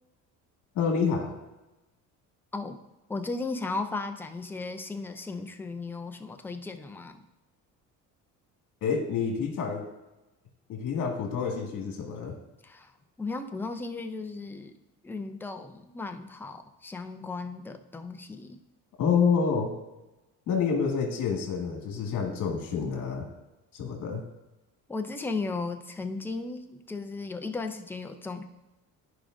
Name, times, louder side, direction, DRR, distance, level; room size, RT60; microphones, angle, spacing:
voice 1, 0.8-1.4 8.8-9.9 10.7-12.3 19.0-19.7 20.5-23.3 23.7-24.2, left 6 dB, 65° left, 2 dB, 2.0 m, -28 dB
voice 2, 3.1-7.2 12.6-12.9 13.2-14.7 15.0-18.6 24.9-28.4, left 3 dB, 5° left, 5 dB, 0.3 m, -35 dB
14.0 x 5.0 x 2.6 m, 1.0 s
cardioid pair, 155°, 33 cm